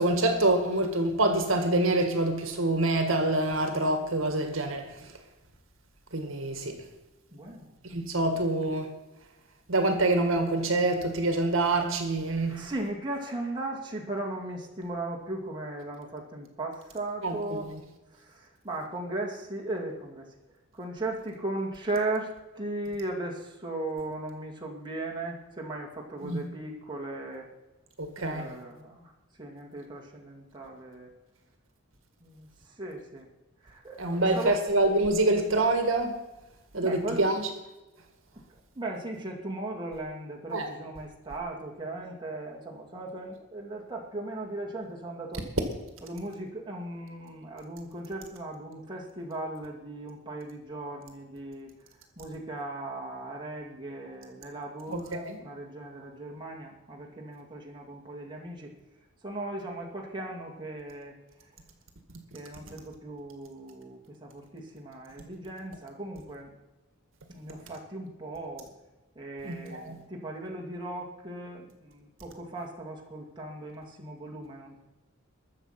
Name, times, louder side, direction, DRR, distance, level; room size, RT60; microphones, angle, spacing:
voice 1, 0.0-5.1 6.1-6.8 7.8-8.9 9.7-12.7 17.2-17.6 26.2-26.4 28.0-28.5 34.0-36.2 36.7-37.4 40.5-40.7 54.9-55.4 69.4-70.0, right 2 dB, 70° right, 1.9 m, -26 dB
voice 2, 7.3-8.0 12.4-17.7 18.1-20.3 20.7-27.5 28.2-31.1 32.2-33.3 33.6-34.6 36.8-37.3 38.5-45.4 46.0-51.7 52.2-58.7 59.2-61.2 61.4-61.6 62.3-66.5 67.3-68.7 69.1-74.8, right 2 dB, 20° right, 2.3 m, -37 dB
21.5 x 7.2 x 5.9 m
head